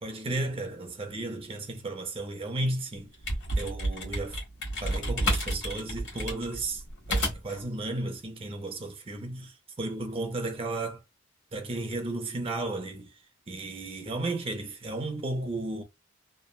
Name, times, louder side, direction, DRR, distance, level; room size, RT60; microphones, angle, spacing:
voice 1, 0.0-3.1 3.6-4.4 4.8-6.8 7.1-9.5 9.8-11.0 11.5-13.1 13.5-15.8, right 2 dB, 25° right, 0.5 m, -34 dB
sound 1, 3.0-7.6, equal, 60° left, 1.5 m, -30 dB
3.1 x 2.1 x 2.2 m
head